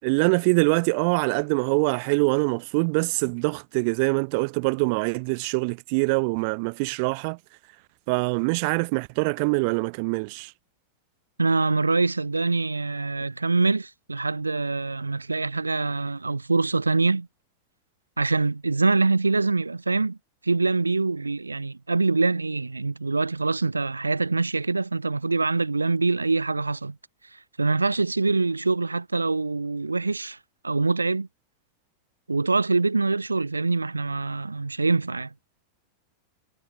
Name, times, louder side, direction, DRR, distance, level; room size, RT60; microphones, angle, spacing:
voice 1, 0.0-7.4 8.1-10.5, right 33 dB, 45° right, 6.0 m, -24 dB
voice 2, 11.4-17.3 18.2-20.2 20.4-27.0 27.6-30.4 30.6-31.3 32.3-35.3, right 3 dB, 80° right, 6.7 m, -24 dB
figure-of-eight pair, 90°, 0 cm